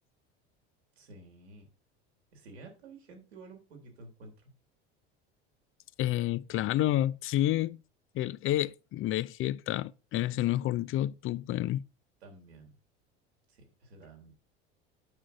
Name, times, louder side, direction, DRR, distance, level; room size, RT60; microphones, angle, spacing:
voice 1, 1.0-1.7 2.3-4.5 12.2-12.8 13.5-14.3, right 3 dB, 85° right, 3.3 m, -51 dB
voice 2, 6.0-7.8 8.1-11.8, left 14 dB, 45° left, 0.5 m, -29 dB
8.8 x 6.2 x 3.8 m
hypercardioid pair, 80°, 31 cm